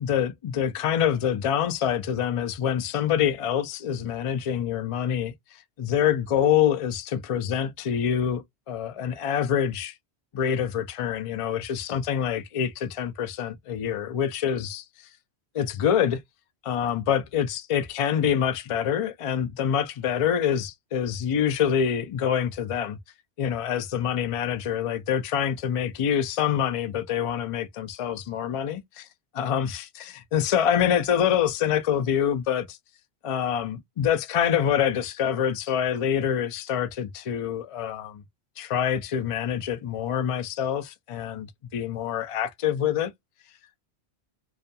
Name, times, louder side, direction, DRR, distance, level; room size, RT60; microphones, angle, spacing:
voice 1, 0.0-5.3 5.8-9.9 10.3-14.8 15.5-16.2 16.6-23.0 23.4-29.1 29.3-32.8 33.2-38.2 38.6-43.1, left 9 dB, 65° left, 0.3 m, -26 dB
2.3 x 2.2 x 2.6 m
omnidirectional pair, 1.1 m